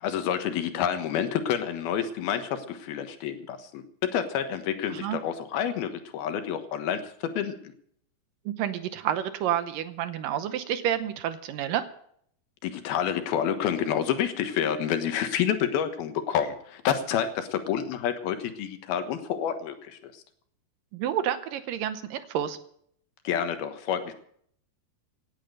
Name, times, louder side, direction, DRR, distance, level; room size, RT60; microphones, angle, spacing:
voice 1, 0.0-7.0 7.3-7.7 12.6-20.2 23.2-24.1, left 9 dB, 80° left, 8 dB, 3.2 m, -29 dB
voice 2, 8.5-11.8 20.9-22.6, right 10 dB, 75° right, 11 dB, 2.4 m, -29 dB
17.5 x 10.5 x 6.6 m, 0.65 s
omnidirectional pair, 4.3 m